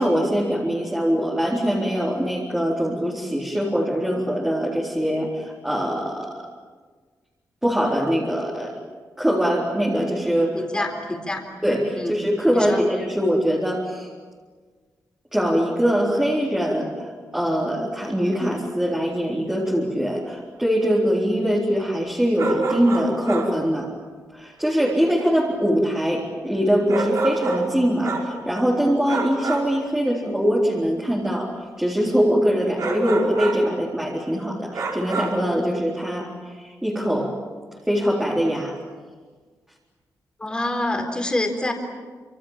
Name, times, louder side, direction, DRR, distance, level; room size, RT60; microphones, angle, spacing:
voice 1, 0.0-6.3 7.6-8.8 9.2-10.9 11.6-14.1 15.3-17.1 17.3-23.9 24.3-31.5 31.8-37.4 37.9-38.8, equal, 5° right, -4 dB, 4.0 m, -22 dB
voice 2, 10.5-10.9 11.3-11.4 11.9-12.2 12.5-12.8 40.4-41.7, left 2 dB, 15° left, 3 dB, 4.1 m, -26 dB
sound 1, 22.4-23.6 26.9-28.4 29.1-29.8 32.8-33.7 34.7-35.5, right 3 dB, 55° right, 5.2 m, -27 dB
29.0 x 26.5 x 7.4 m, 1.5 s
wide cardioid pair, 180°, 6 cm